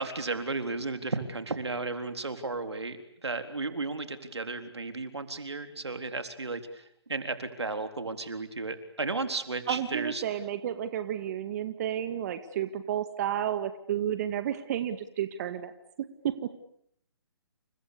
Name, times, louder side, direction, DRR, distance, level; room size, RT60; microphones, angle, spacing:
voice 1, 0.0-3.0 3.2-6.8 7.1-10.3, right 3 dB, 90° right, 7 dB, 3.9 m, -34 dB
voice 2, 9.7-15.7 16.2-16.5, right 10 dB, 40° right, 9 dB, 2.1 m, -31 dB
30.0 x 29.0 x 6.9 m, 0.70 s
figure-of-eight pair, 140°, 14 cm